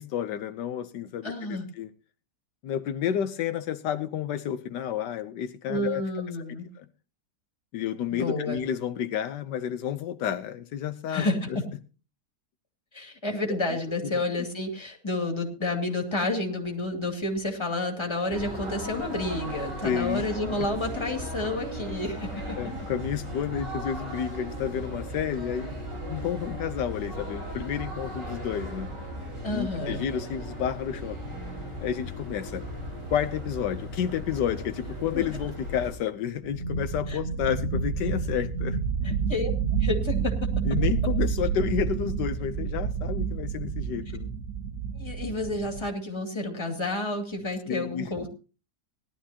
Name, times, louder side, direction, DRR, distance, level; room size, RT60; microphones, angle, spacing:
voice 1, 0.0-1.9 2.6-6.0 6.4-6.9 7.7-11.6 19.8-20.2 22.6-28.9 29.5-31.2 31.8-32.6 33.1-38.8 40.6-44.3 47.7-48.1, left 9 dB, 85° left, 1.4 m, -31 dB
voice 2, 1.2-1.7 5.7-6.7 8.1-8.6 11.1-11.5 12.9-22.3 29.4-30.0 35.1-35.2 37.1-37.2 39.0-39.5 39.8-40.4 45.0-48.3, left 2 dB, 15° left, 2.4 m, -30 dB
sound 1, 18.3-35.9, equal, 85° right, 5.0 m, -37 dB
sound 2, 35.6-35.7 35.9-36.0 36.4-45.9, right 6 dB, 60° right, 1.4 m, -29 dB
19.0 x 12.0 x 2.8 m
omnidirectional pair, 1.8 m